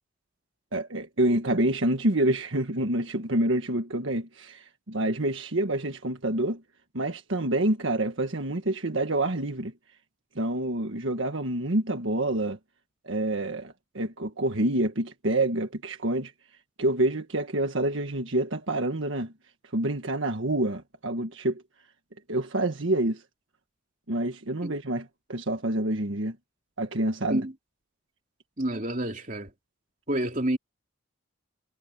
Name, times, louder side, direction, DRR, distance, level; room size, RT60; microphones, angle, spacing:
voice 1, 0.7-6.6 6.9-9.7 10.3-12.6 13.0-16.3 16.8-19.3 19.7-21.6 22.3-23.2 24.1-26.4 26.8-27.4, right 1 dB, 70° right, 1.6 m, -27 dB
voice 2, 28.6-29.5 30.1-30.6, right 1 dB, 40° right, 3.3 m, -28 dB
head